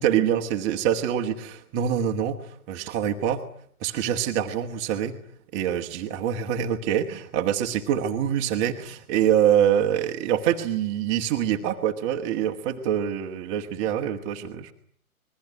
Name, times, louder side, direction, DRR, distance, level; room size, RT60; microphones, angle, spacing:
voice 1, 0.0-3.4 3.8-5.1 5.5-14.7, right 9 dB, 20° right, 5 dB, 1.7 m, -25 dB
27.5 x 21.5 x 9.7 m, 0.63 s
figure-of-eight pair, 130°, 44 cm